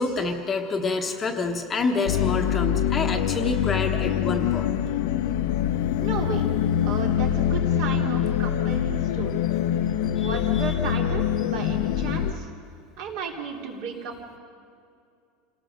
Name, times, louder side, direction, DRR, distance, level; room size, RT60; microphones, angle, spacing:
voice 1, 0.0-4.7 9.8-11.0, left 3 dB, 15° left, 3 dB, 1.1 m, -28 dB
sound 1, 2.1-12.3, left 10 dB, 70° left, 0.8 m, -24 dB
voice 2, 6.0-6.5 6.8-9.4 10.2-12.5 13.0-14.4, right 5 dB, 55° right, 1 dB, 3.2 m, -34 dB
27.5 x 18.0 x 6.5 m, 2.4 s
cardioid pair, 175°, 0 cm